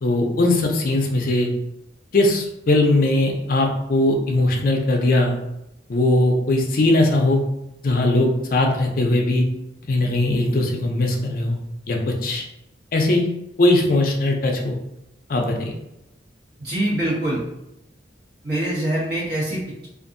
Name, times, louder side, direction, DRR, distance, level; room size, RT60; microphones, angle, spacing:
voice 1, 0.0-1.5 2.1-5.4 5.9-7.4 7.8-9.4 9.9-11.6 11.9-12.4 12.9-13.3 13.6-14.8 15.3-15.7, left 2 dB, 50° left, 2 dB, 0.4 m, -19 dB
voice 2, 16.6-17.4 18.4-19.9, right 1 dB, 55° right, -7 dB, 1.2 m, -24 dB
2.6 x 2.4 x 2.5 m, 0.88 s
head